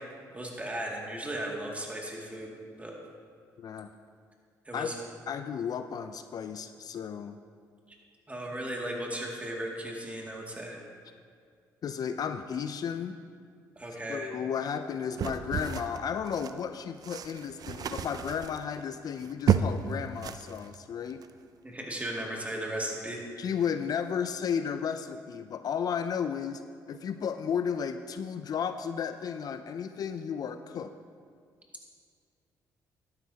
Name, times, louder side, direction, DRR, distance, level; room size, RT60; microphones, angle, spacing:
voice 1, 0.3-2.5 2.8-2.9 4.7-4.9 8.3-10.8 13.8-14.3 21.6-23.2, right 1 dB, 20° right, -2 dB, 2.3 m, -36 dB
voice 2, 3.6-3.9 4.7-4.9 5.3-7.4 11.8-13.2 14.1-21.2 23.4-26.6 26.9-30.9, left 7 dB, 55° left, 9 dB, 0.4 m, -33 dB
sound 1, 15.2-16.6 17.0-19.9 20.2-20.7 21.1-21.3, right 7 dB, 55° right, 0.4 m, -31 dB
12.0 x 10.5 x 2.9 m, 2.1 s
supercardioid pair, 65°, 8 cm